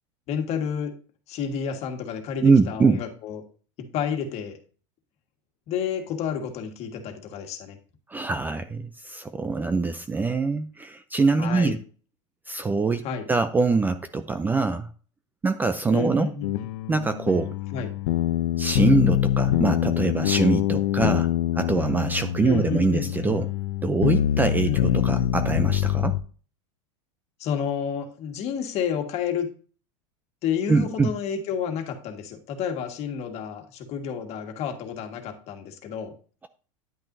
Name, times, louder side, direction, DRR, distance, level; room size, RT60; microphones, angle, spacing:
voice 1, 0.3-1.0 1.3-3.4 3.8-4.6 5.7-7.8 11.4-11.8 13.0-13.3 15.9-16.5 17.7-17.9 22.4-23.4 24.7-25.3 27.4-29.5 30.4-36.1, left 7 dB, 40° left, 5 dB, 1.7 m, -30 dB
voice 2, 2.4-3.0 8.1-11.8 12.5-14.9 15.4-16.3 16.9-17.5 18.6-21.3 21.5-23.5 23.8-26.2 30.7-31.1, right 4 dB, 10° right, 10 dB, 0.5 m, -23 dB
sound 1, 16.4-26.2, left 12 dB, 75° left, 0.7 m, -24 dB
10.0 x 9.0 x 2.7 m, 0.40 s
supercardioid pair, 135°, 16 cm